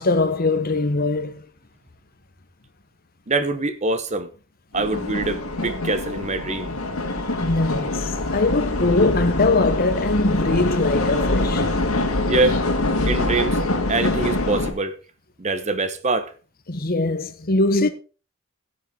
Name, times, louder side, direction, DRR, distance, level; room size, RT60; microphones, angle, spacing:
voice 1, 0.0-1.4 7.4-11.7 16.7-17.9, left 2 dB, 45° left, 1.0 m, -21 dB
voice 2, 3.3-4.3 4.7-6.7 12.3-12.6 13.1-13.6 13.9-14.9 15.4-16.3, right 3 dB, 30° right, 1.0 m, -24 dB
sound 1, 4.7-14.7, left 2 dB, 70° left, 2.1 m, -24 dB
16.5 x 6.4 x 3.8 m
head